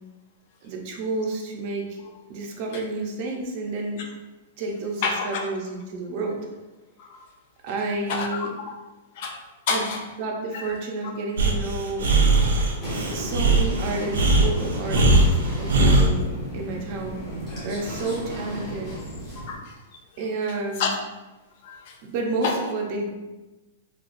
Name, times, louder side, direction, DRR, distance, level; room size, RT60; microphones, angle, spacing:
voice 1, 0.6-2.0 2.3-4.0 4.6-6.4 7.6-8.5 9.7-9.9 10.2-12.1 13.1-16.3 16.5-17.2 17.6-18.9 20.2-20.9 22.0-23.1, right 3 dB, 40° right, 1 dB, 0.5 m, -30 dB
voice 2, 5.0-5.5 7.0-7.2 8.1-8.3 8.6-8.7 9.2-10.0 10.5-10.8 14.9-15.1 15.9-16.0 19.4-19.8 20.8-20.9 21.6-22.0 22.4-22.6, left 5 dB, 50° left, 2 dB, 0.5 m, -29 dB
Breathing, 11.4-16.1, right 2 dB, 85° right, 0.6 m, -19 dB
sound 1, 12.8-19.6, equal, 20° left, 1.1 m, -33 dB
3.9 x 2.3 x 2.5 m, 1.1 s
hypercardioid pair, 160°, 0 cm